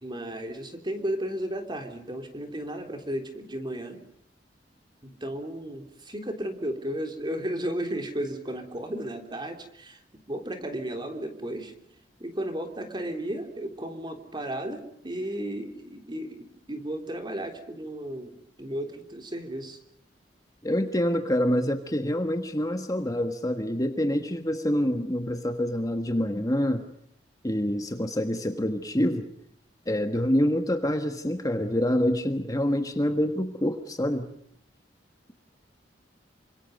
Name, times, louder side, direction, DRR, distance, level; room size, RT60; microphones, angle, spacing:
voice 1, 0.0-4.0 5.0-10.0 10.3-11.8 12.2-19.8, right 1 dB, 25° right, 5 dB, 3.4 m, -34 dB
voice 2, 20.6-26.8 27.4-29.3 29.9-34.3, equal, 20° left, 7 dB, 1.5 m, -26 dB
28.0 x 25.5 x 5.3 m, 0.69 s
head